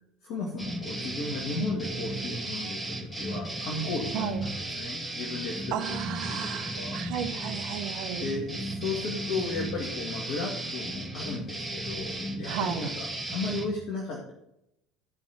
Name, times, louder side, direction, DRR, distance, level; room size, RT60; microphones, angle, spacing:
voice 1, 0.2-6.0 6.3-7.0 8.2-14.3, left 3 dB, 60° left, -1 dB, 2.1 m, -35 dB
sound 1, 0.6-13.7, right 1 dB, ahead, 3.1 m, -35 dB
voice 2, 4.1-4.4 5.7-8.3 12.5-12.9, right 10 dB, 60° right, 7 dB, 1.0 m, -33 dB
14.5 x 5.4 x 4.6 m, 0.83 s
figure-of-eight pair, 65°, 0 cm